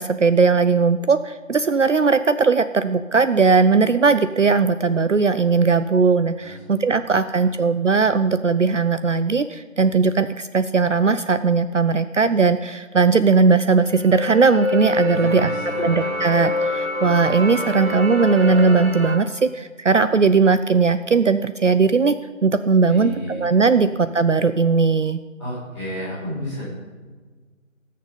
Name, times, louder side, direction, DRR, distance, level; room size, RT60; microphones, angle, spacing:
voice 1, 0.0-15.5 15.8-25.2, right 4 dB, 65° right, 11 dB, 0.5 m, -18 dB
voice 2, 7.0-7.6 15.1-16.1 22.9-24.1 25.4-26.7, equal, ahead, -21 dB, 3.8 m, -33 dB
sound 1, 13.6-19.2, left 2 dB, 85° right, 2.8 m, -26 dB
18.5 x 6.6 x 5.3 m, 1.4 s
figure-of-eight pair, 165°, 40 cm